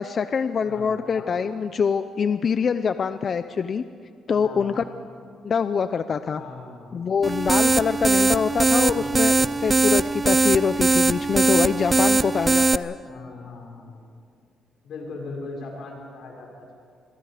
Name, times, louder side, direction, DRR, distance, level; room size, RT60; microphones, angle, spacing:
voice 1, 0.0-3.8 4.3-4.8 5.4-6.4 6.9-9.3 9.6-13.0, left 6 dB, 50° left, 11 dB, 0.7 m, -24 dB
voice 2, 0.6-1.4 4.4-4.8 6.3-7.2 8.8-9.4 13.1-14.0 14.8-16.7, left 3 dB, 70° left, -1 dB, 6.1 m, -39 dB
sound 1, 7.2-12.8, right 3 dB, 25° right, 0.6 m, -20 dB
28.5 x 22.0 x 5.1 m, 2.2 s
cardioid pair, 90°, 0 cm